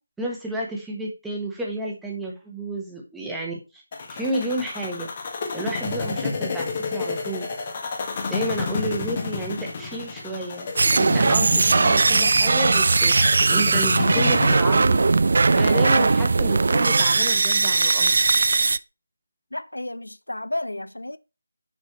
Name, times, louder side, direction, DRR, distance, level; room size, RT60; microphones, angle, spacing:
voice 1, 0.2-3.8 4.1-5.1 5.5-7.4 8.3-15.0 15.5-18.1, right 1 dB, 5° right, 1.4 m, -31 dB
sound 1, 3.9-14.6, left 4 dB, 30° left, 1.4 m, -31 dB
sound 2, 10.8-18.8, right 3 dB, 45° right, 0.3 m, -19 dB
voice 2, 19.5-21.2, left 1 dB, 70° left, 0.6 m, -32 dB
6.7 x 6.1 x 4.7 m
figure-of-eight pair, 155°, 0 cm